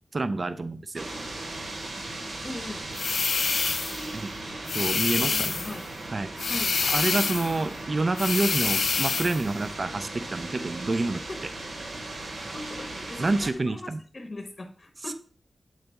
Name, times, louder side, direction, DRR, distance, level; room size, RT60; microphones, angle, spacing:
voice 1, 0.1-1.1 4.1-4.3 4.7-5.5 6.1-6.3 6.9-11.2 13.2-14.0, right 2 dB, 40° right, 11 dB, 0.4 m, -28 dB
sound 1, 1.0-13.5, right 2 dB, 70° right, 1.1 m, -37 dB
voice 2, 2.4-2.9 5.1-5.9 6.5-6.8 11.3-11.5 12.5-15.1, left 2 dB, 40° left, 5 dB, 0.8 m, -39 dB
sound 2, 2.9-4.1 4.7-5.8 6.4-7.6 8.2-9.4, left 5 dB, 75° left, 0.4 m, -27 dB
7.8 x 4.0 x 3.5 m, 0.42 s
wide cardioid pair, 130°, 0 cm